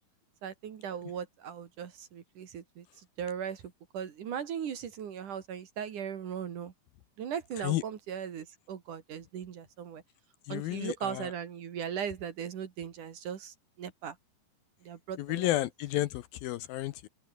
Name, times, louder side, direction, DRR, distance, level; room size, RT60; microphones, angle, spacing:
voice 1, 0.4-2.9 3.2-3.6 3.9-6.7 7.2-10.0 10.5-14.2 14.8-15.5, right 8 dB, 55° right, 3.2 m, -38 dB
voice 2, 10.5-11.3 15.2-17.1, left 15 dB, 75° left, 2.4 m, -32 dB
open air
omnidirectional pair, 4.7 m